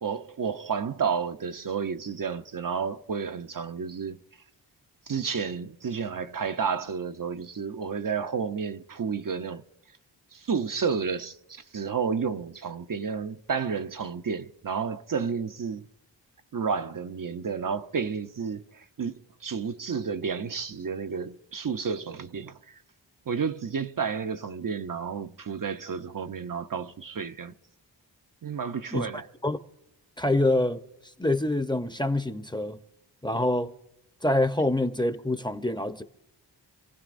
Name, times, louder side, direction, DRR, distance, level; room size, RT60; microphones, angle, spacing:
voice 1, 0.0-4.2 5.1-9.6 10.3-15.8 16.5-22.8 23.3-27.5 28.4-29.3, right 6 dB, 45° right, 0.7 m, -31 dB
voice 2, 30.2-30.8 31.2-32.8 33.2-33.7 34.2-36.0, left 1 dB, 10° left, 0.8 m, -25 dB
27.5 x 15.5 x 2.5 m
cardioid pair, 45°, 45 cm